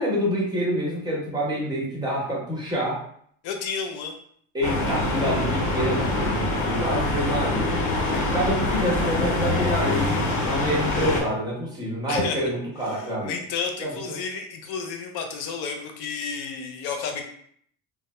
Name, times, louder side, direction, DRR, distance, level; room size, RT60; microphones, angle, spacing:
voice 1, 0.0-3.0 4.5-7.8 8.2-10.2 10.4-13.4 13.8-14.2, equal, 10° right, -5 dB, 1.1 m, -27 dB
voice 2, 3.4-4.1 12.1-12.4 12.9-17.3, left 5 dB, 75° left, 5 dB, 0.6 m, -31 dB
sound 1, 4.6-11.2, left 2 dB, 50° left, 0.9 m, -24 dB
3.3 x 2.0 x 3.1 m, 0.63 s
cardioid pair, 140°, 38 cm